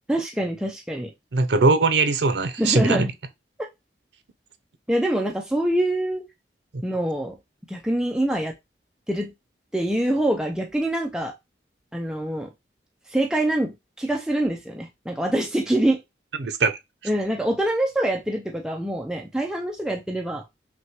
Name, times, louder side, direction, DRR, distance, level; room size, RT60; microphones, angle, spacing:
voice 1, 0.1-1.1 2.6-3.1 4.9-6.2 6.8-7.4 7.7-8.5 9.1-9.3 9.7-11.3 11.9-12.5 13.1-16.0 17.0-20.4, right 1 dB, 5° right, 0.4 m, -25 dB
voice 2, 1.3-3.1 16.4-16.8, right 3 dB, 80° right, 0.6 m, -20 dB
5.8 x 2.2 x 2.9 m
head